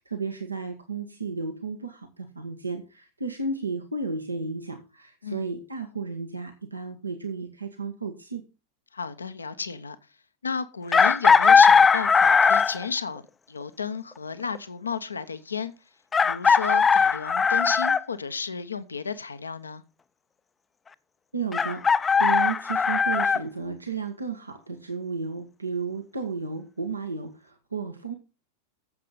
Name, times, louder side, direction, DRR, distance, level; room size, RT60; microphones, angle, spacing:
voice 1, 0.0-8.4 21.3-28.1, right 4 dB, 80° right, 1.4 m, -33 dB
voice 2, 8.9-10.0 10.4-13.2 13.5-15.7 16.2-19.8, left 5 dB, 75° left, 0.9 m, -33 dB
Chicken rooster, 10.9-12.9 14.5-14.6 16.1-18.0 21.5-23.4, left 5 dB, 15° left, 0.6 m, -19 dB
14.5 x 7.5 x 4.0 m
figure-of-eight pair, 90°, 0 cm